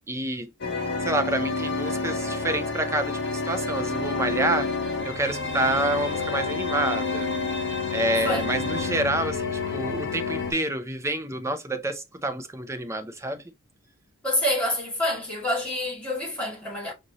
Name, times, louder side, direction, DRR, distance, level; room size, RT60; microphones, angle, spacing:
voice 1, 0.1-0.5 1.0-4.7 5.0-7.3 7.9-13.4, right 1 dB, 15° right, 0.5 m, -28 dB
sound 1, 0.6-10.5, left 3 dB, 55° left, 1.1 m, -29 dB
voice 2, 14.2-16.9, left 1 dB, 5° left, 2.3 m, -27 dB
5.1 x 2.7 x 2.9 m
head